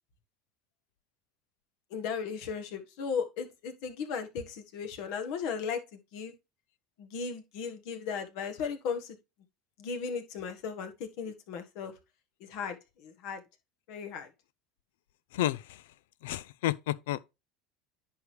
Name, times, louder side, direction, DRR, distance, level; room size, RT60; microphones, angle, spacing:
voice 1, 1.9-6.3 7.0-9.2 9.8-11.9 12.4-13.4 13.9-14.3, left 6 dB, 70° left, 1.4 m, -36 dB
voice 2, 16.2-17.2, left 14 dB, 85° left, 0.4 m, -30 dB
10.0 x 4.8 x 3.3 m
supercardioid pair, 105°, 0 cm